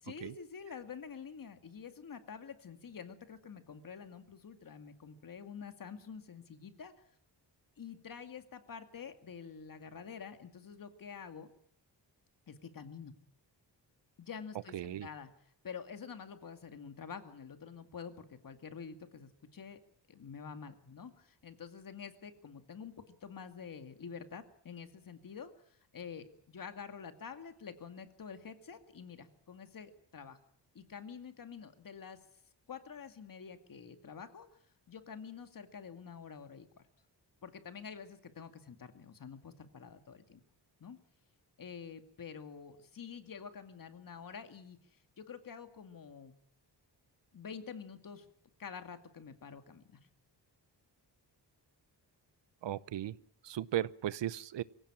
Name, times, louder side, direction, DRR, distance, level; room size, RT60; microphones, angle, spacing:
voice 1, 0.0-6.9 7.8-11.5 12.5-13.1 14.2-15.3 15.6-19.8 20.1-30.4 30.7-32.2 32.7-34.5 34.9-36.8 37.4-40.4 40.8-41.0 41.6-44.8 45.2-46.3 47.3-48.3 48.6-50.0, left 6 dB, 50° left, 8 dB, 2.3 m, -48 dB
voice 2, 14.7-15.1 52.6-53.2 53.4-54.6, right 12 dB, 85° right, 19 dB, 0.9 m, -36 dB
24.0 x 16.5 x 8.9 m, 0.64 s
wide cardioid pair, 155°, 42 cm